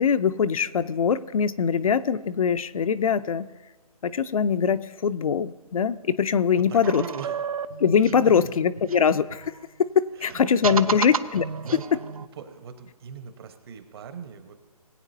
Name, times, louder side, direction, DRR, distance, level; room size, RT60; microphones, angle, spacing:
voice 1, 0.0-3.5 4.0-7.0 7.8-9.5 9.8-11.5, left 7 dB, 60° left, 12 dB, 0.5 m, -22 dB
voice 2, 6.6-7.4 8.2-8.6 10.2-10.4 10.7-11.1 11.6-12.0 12.4-14.5, right 6 dB, 40° right, 8 dB, 1.1 m, -40 dB
sound 1, 6.8-9.6 10.3-12.3, right 6 dB, 65° right, 0.6 m, -32 dB
20.0 x 9.0 x 2.7 m, 1.3 s
hypercardioid pair, 150°, 20 cm